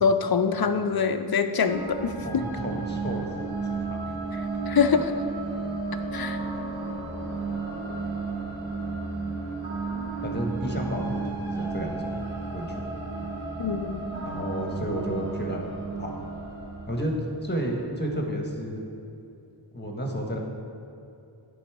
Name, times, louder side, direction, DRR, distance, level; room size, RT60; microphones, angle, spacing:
voice 1, 0.0-2.4 4.3-5.0 6.1-6.4 13.6-14.0, left 6 dB, 50° left, 9 dB, 0.5 m, -24 dB
sound 1, 1.6-17.8, right 3 dB, 70° right, 1.7 m, -33 dB
voice 2, 2.2-3.5 3.8-4.4 4.9-5.0 10.2-12.3 12.5-12.8 14.2-15.7 16.0-16.1 16.9-17.1 17.4-18.8 19.7-20.4, right 1 dB, 20° left, 0 dB, 1.2 m, -32 dB
11.5 x 3.9 x 4.7 m, 2.7 s
wide cardioid pair, 50°, 49 cm